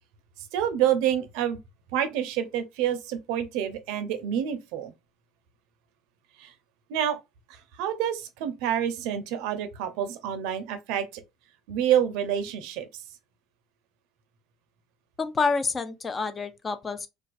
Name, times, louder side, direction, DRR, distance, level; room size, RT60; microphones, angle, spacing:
voice 1, 0.4-1.6 1.9-4.9 6.4-6.5 6.9-7.2 7.5-11.2 11.7-13.0, right 10 dB, 75° right, 0.4 m, -28 dB
voice 2, 15.2-17.1, left 4 dB, 25° left, 0.3 m, -28 dB
2.3 x 2.3 x 2.4 m
supercardioid pair, 85°, 0 cm